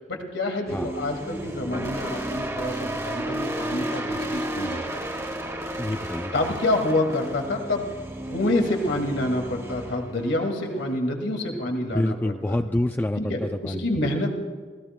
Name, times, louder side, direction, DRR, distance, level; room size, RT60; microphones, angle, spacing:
voice 1, 0.1-5.0 6.3-7.9 8.3-12.6 13.2-14.3, left 1 dB, 90° left, 3 dB, 2.1 m, -27 dB
sound 1, 0.7-11.0, right 1 dB, 20° right, 1.7 m, -33 dB
voice 2, 5.8-6.3 11.9-13.9, left 1 dB, 10° left, 7 dB, 0.3 m, -27 dB
28.5 x 17.5 x 2.2 m, 1.5 s
head